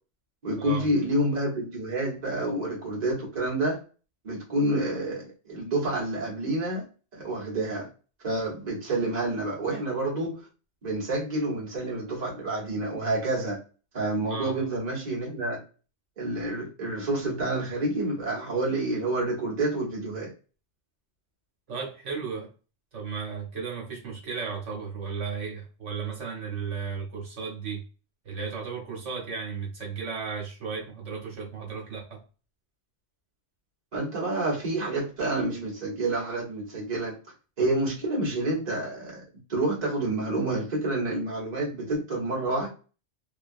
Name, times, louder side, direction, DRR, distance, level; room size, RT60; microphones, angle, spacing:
voice 1, 0.4-3.8 4.2-6.8 7.1-7.9 8.2-10.5 10.8-13.6 13.9-15.6 16.2-20.3 33.9-37.1 37.6-39.2 39.5-42.7, right 2 dB, 35° right, 1.1 m, -28 dB
voice 2, 21.7-22.5 22.9-27.8 28.2-32.2, right 5 dB, 70° right, 1.2 m, -35 dB
2.7 x 2.3 x 2.5 m
omnidirectional pair, 1.3 m